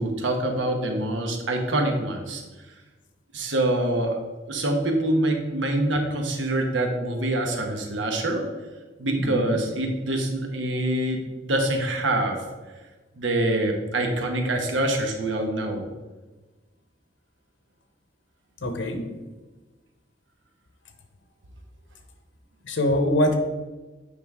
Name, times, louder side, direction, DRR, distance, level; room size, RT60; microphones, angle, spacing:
voice 1, 0.0-2.4 3.3-4.2 4.5-8.5 9.0-12.4 13.2-15.8, right 1 dB, 80° right, 3 dB, 1.2 m, -25 dB
voice 2, 9.2-9.6 18.6-19.2 22.6-23.4, left 1 dB, 85° left, 5 dB, 1.0 m, -24 dB
8.6 x 5.3 x 3.6 m, 1.2 s
head